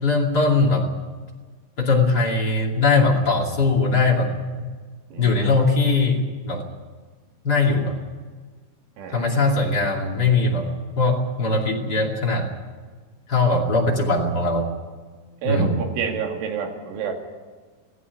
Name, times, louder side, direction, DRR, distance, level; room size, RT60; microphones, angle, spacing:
voice 1, 0.0-0.9 1.8-4.3 5.2-6.6 7.4-8.0 9.1-10.7 11.0-12.5 13.3-14.7 15.4-15.7, left 3 dB, 30° left, -1 dB, 2.0 m, -20 dB
voice 2, 5.1-5.5 9.0-9.5 15.4-17.1, right 6 dB, 75° right, 2 dB, 4.8 m, -29 dB
17.0 x 17.0 x 9.7 m, 1.4 s
omnidirectional pair, 5.7 m